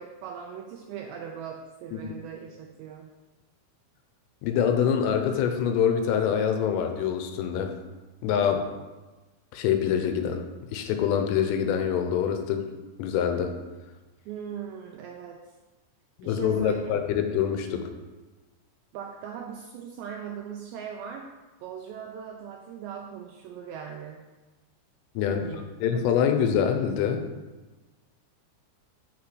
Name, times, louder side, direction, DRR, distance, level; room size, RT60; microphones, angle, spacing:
voice 1, 0.0-3.1 14.3-15.5 16.2-16.8 18.9-21.3 21.6-24.2 25.2-25.6 25.9-26.2, right 8 dB, 85° right, 2 dB, 2.5 m, -40 dB
voice 2, 4.4-7.8 8.2-8.7 9.5-10.4 10.7-12.7 13.0-13.5 16.2-17.9 25.2-25.4 25.8-27.2, left 8 dB, 80° left, 6 dB, 3.4 m, -25 dB
8.8 x 5.7 x 7.7 m, 1.2 s
omnidirectional pair, 5.9 m